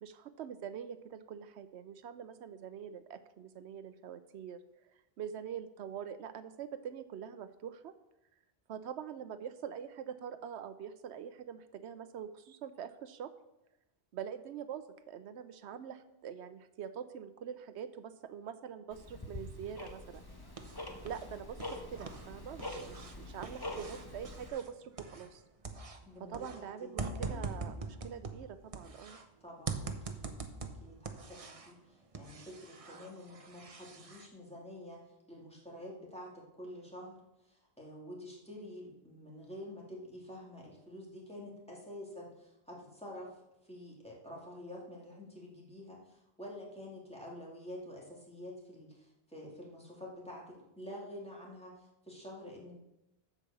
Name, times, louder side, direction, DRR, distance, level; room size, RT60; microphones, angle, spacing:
voice 1, 0.0-4.6 5.2-7.9 8.7-13.3 14.1-20.2 21.0-25.4 26.2-29.2, right 8 dB, 85° right, 12 dB, 0.9 m, -44 dB
Tick-tock, 18.9-24.5, left 1 dB, 20° left, 1.3 m, -45 dB
sound 1, 20.1-21.3 21.5-25.4 25.6-29.2 29.7-31.8 32.1-34.3, right 4 dB, 35° right, 0.9 m, -43 dB
voice 2, 26.1-27.5 29.4-30.3 30.6-37.2 37.4-52.7, left 1 dB, 5° left, -4 dB, 2.5 m, -48 dB
8.3 x 7.1 x 6.9 m, 0.90 s
omnidirectional pair, 1.1 m